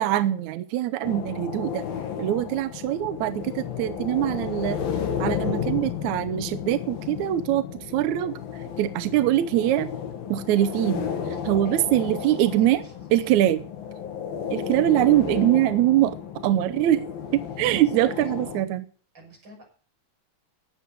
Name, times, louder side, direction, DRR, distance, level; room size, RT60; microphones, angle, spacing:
voice 1, 0.0-1.9 2.2-4.8 5.2-8.3 8.8-9.9 10.3-12.8 13.1-13.6 14.5-16.2 16.4-17.0 17.3-18.9, right 13 dB, 75° right, 10 dB, 1.8 m, -23 dB
sound 1, 1.0-18.6, left 8 dB, 85° left, 3.8 m, -33 dB
voice 2, 2.4-2.7 11.4-12.9 13.2-13.3 17.8-18.2 19.1-19.6, right 1 dB, 30° right, -1 dB, 6.7 m, -51 dB
12.5 x 8.1 x 8.2 m, 0.42 s
omnidirectional pair, 4.0 m